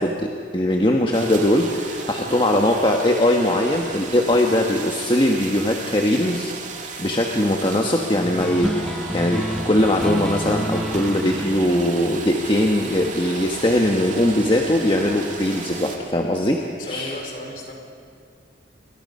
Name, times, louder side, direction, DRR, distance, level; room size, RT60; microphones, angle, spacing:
voice 1, 0.0-6.5 7.0-17.1, left 1 dB, 25° left, 1 dB, 1.3 m, -20 dB
sound 1, 1.1-16.0, right 4 dB, 40° right, 2.4 m, -35 dB
sound 2, 8.2-13.1, equal, 5° left, 1.0 m, -29 dB
voice 2, 16.8-17.7, left 1 dB, 50° left, 1 dB, 4.5 m, -35 dB
29.5 x 22.0 x 5.5 m, 2.2 s
head